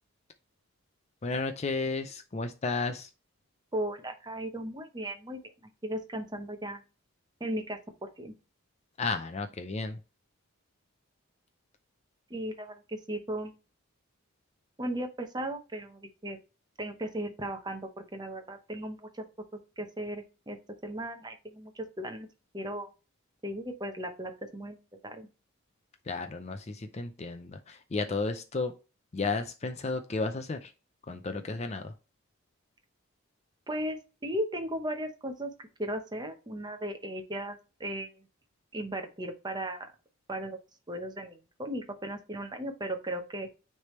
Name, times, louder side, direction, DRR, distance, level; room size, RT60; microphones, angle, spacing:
voice 1, 1.2-3.1 9.0-10.0 26.1-28.7 29.1-30.7 31.1-31.9, left 3 dB, 30° left, 7 dB, 0.4 m, -33 dB
voice 2, 3.7-5.5 5.8-6.8 7.4-8.3 12.3-13.5 14.8-16.4 16.8-19.2 19.8-20.6 20.8-22.3 22.5-22.9 23.4-24.8 25.0-25.3 33.7-38.2 38.7-39.9 40.3-40.6 40.9-43.5, right 1 dB, 20° right, 6 dB, 0.8 m, -36 dB
9.5 x 3.4 x 3.1 m, 0.32 s
head